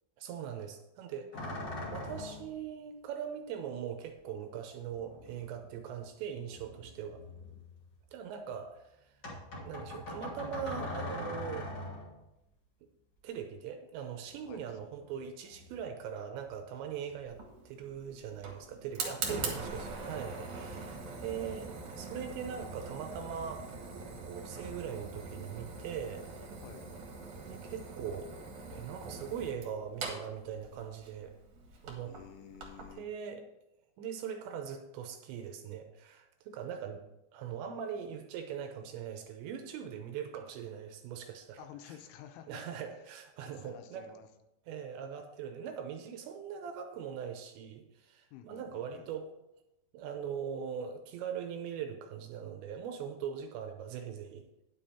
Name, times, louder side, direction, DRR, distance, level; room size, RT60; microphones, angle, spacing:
voice 1, 0.2-1.6 1.9-7.2 8.1-9.2 9.6-11.7 13.2-17.4 17.7-26.2 27.4-28.3 28.7-31.3 31.8-32.1 33.0-33.4 34.0-37.0 37.3-41.7 42.5-44.1 44.7-49.3 49.9-54.5, right 8 dB, 80° right, 5 dB, 2.8 m, -41 dB
sound 1, 1.3-2.6 4.1-4.2 4.9-6.1 6.4-8.0 9.2-12.2 14.3-15.2 15.4-16.0 16.4-17.4, left 1 dB, 45° left, 1.3 m, -43 dB
voice 2, 14.5-14.8 19.0-19.9 26.6-26.9 32.1-33.1 41.6-42.7 42.9-43.1 43.4-44.3 48.3-49.1, left 9 dB, 80° left, 7 dB, 3.1 m, -51 dB
Fire, 17.2-32.9, right 4 dB, 60° right, 2.0 m, -43 dB
9.8 x 7.3 x 4.3 m, 0.90 s
omnidirectional pair, 5.6 m